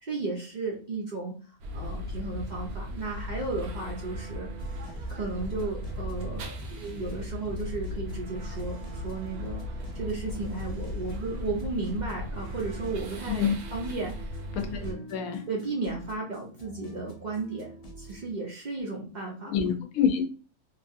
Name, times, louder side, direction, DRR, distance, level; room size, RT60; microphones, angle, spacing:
voice 1, 0.0-4.5 5.1-9.6 9.9-14.4 14.8-15.0 15.5-19.6, right 3 dB, 60° right, -2 dB, 0.4 m, -34 dB
sound 1, 1.6-14.9, left 1 dB, 90° right, 1.1 m, -37 dB
sound 2, 4.6-18.3, right 1 dB, 65° left, 0.3 m, -45 dB
voice 2, 14.5-14.8 15.1-15.4 19.5-20.2, left 7 dB, 85° left, 5 dB, 1.0 m, -26 dB
2.9 x 2.4 x 2.6 m, 0.37 s
omnidirectional pair, 1.5 m